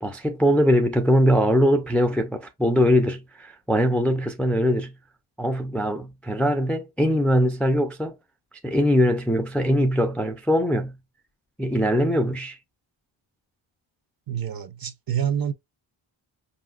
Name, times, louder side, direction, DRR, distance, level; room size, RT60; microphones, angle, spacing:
voice 1, 0.0-4.9 5.4-8.1 8.6-11.0 11.6-12.6, equal, 5° left, 0.4 m, -21 dB
voice 2, 14.3-15.5, right 9 dB, 45° right, 0.7 m, -27 dB
5.4 x 2.7 x 2.4 m
wide cardioid pair, 160°, 48 cm